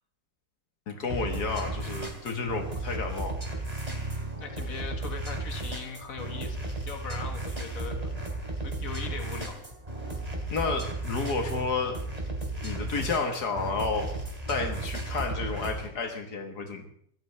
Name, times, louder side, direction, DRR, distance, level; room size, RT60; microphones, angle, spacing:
voice 1, 0.9-3.4 10.5-12.0 12.6-14.1 14.5-16.9, left 4 dB, 80° left, 4 dB, 2.1 m, -31 dB
sound 1, 1.1-15.9, right 2 dB, 25° right, 3.0 m, -34 dB
voice 2, 3.9-6.6 6.9-8.1 8.6-9.6, left 4 dB, 60° left, 4 dB, 2.2 m, -40 dB
23.5 x 14.0 x 3.4 m, 0.68 s
omnidirectional pair, 1.7 m